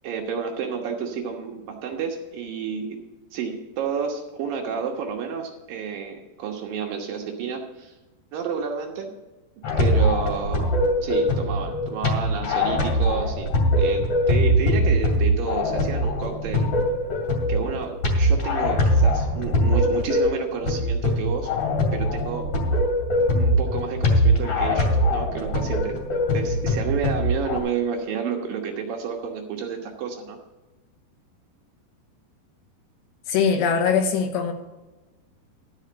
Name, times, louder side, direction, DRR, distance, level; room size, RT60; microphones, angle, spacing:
voice 1, 0.0-3.0 3.3-7.9 8.3-9.1 9.8-10.8 11.0-13.5 13.8-16.7 17.5-21.5 21.9-22.4 23.3-26.0 26.3-30.4, right 6 dB, 70° right, 1 dB, 2.4 m, -30 dB
sound 1, 9.6-27.6, equal, 40° left, 3.0 m, -22 dB
voice 2, 33.3-34.5, left 6 dB, 85° left, 5 dB, 3.4 m, -21 dB
12.5 x 5.7 x 7.5 m, 1.1 s
omnidirectional pair, 4.9 m